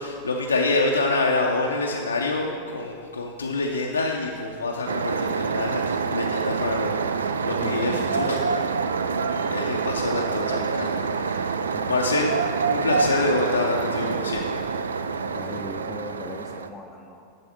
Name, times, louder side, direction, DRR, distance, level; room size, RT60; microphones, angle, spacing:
voice 1, 0.0-8.7 9.1-11.6 11.9-12.3 12.7-14.6, left 2 dB, 75° left, 0 dB, 0.5 m, -27 dB
sound 1, 4.9-16.7, right 5 dB, 70° right, 0.3 m, -26 dB
voice 2, 7.6-8.3 11.6-12.0 15.3-17.2, left 2 dB, 10° left, -1 dB, 0.6 m, -38 dB
10.5 x 4.1 x 6.1 m, 2.4 s
figure-of-eight pair, 90°, 0 cm